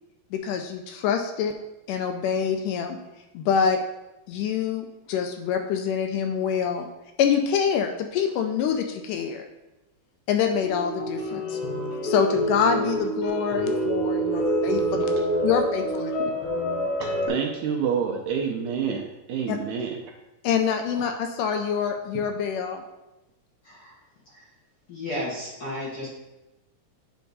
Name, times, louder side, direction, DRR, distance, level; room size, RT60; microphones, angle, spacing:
voice 1, 0.3-1.5 1.9-3.0 3.3-3.8 4.3-6.9 7.2-9.4 10.3-11.6 12.0-15.1 15.4-16.1 19.5-19.6 20.4-22.8, left 7 dB, 80° left, 5 dB, 2.0 m, -25 dB
sound 1, 10.6-17.3, right 1 dB, 55° left, 1.7 m, -27 dB
voice 2, 17.0-20.0 22.1-22.2, right 7 dB, 75° right, 1 dB, 1.9 m, -28 dB
voice 3, 23.6-24.0 24.2-24.5 24.9-26.1, left 1 dB, 40° left, -6 dB, 1.6 m, -34 dB
9.3 x 3.5 x 4.0 m, 0.99 s
omnidirectional pair, 3.9 m